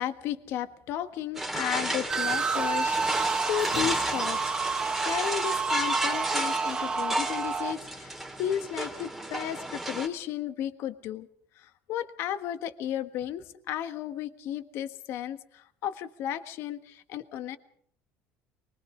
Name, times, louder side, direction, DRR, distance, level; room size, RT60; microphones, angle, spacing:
voice 1, 0.0-11.3 11.6-17.6, left 10 dB, 60° left, 10 dB, 1.5 m, -34 dB
sound 1, 1.4-10.1, right 1 dB, 5° right, 2.9 m, -33 dB
sound 2, 2.1-7.7, right 5 dB, 20° right, 1.1 m, -29 dB
24.0 x 22.5 x 5.0 m, 0.63 s
cardioid pair, 145°, 5 cm